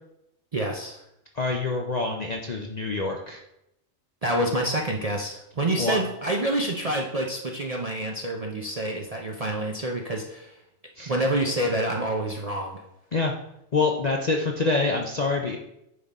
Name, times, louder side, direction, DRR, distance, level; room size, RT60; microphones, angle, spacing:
voice 1, 0.5-1.0 4.2-10.5 11.1-12.8, right 1 dB, 40° right, 0 dB, 0.6 m, -27 dB
voice 2, 1.3-3.4 5.8-6.0 11.0-11.1 13.1-13.3 13.7-15.6, left 3 dB, 45° left, 1 dB, 0.5 m, -26 dB
9.4 x 3.8 x 4.1 m, 0.82 s
omnidirectional pair, 1.4 m